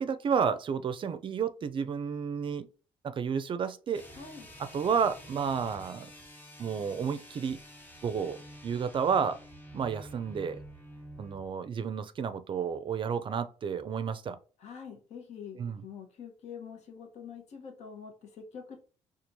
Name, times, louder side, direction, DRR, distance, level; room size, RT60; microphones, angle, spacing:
voice 1, 0.0-2.7 3.0-4.0 4.6-6.1 6.6-7.6 8.0-9.4 9.7-10.6 11.2-14.4 15.6-15.8, right 6 dB, 45° right, 0.4 m, -31 dB
sound 1, 3.9-11.5, equal, 15° left, 1.1 m, -49 dB
voice 2, 4.1-4.5 14.6-18.8, left 6 dB, 70° left, 1.0 m, -45 dB
4.4 x 2.4 x 2.7 m
cardioid pair, 80°, 12 cm